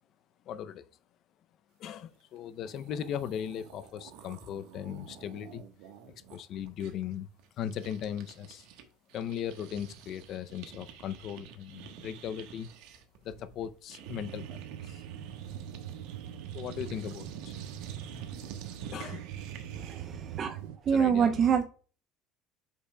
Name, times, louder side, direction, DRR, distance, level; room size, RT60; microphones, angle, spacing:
voice 1, 0.5-0.9 1.8-5.6 6.3-7.3 7.6-8.7 9.1-12.7 13.2-15.0 16.5-17.5 18.9-19.3 20.9-21.4, left 9 dB, 40° left, 0.5 m, -38 dB
sound 1, 2.4-2.5 2.6-8.8 9.1-20.2, right 6 dB, 65° right, 1.2 m, -49 dB
sound 2, 14.1-20.8, right 11 dB, 85° right, 0.5 m, -43 dB
voice 2, 19.8-20.6 20.9-21.6, right 7 dB, 30° right, 0.4 m, -26 dB
8.3 x 5.5 x 2.2 m
cardioid pair, 170°, 0 cm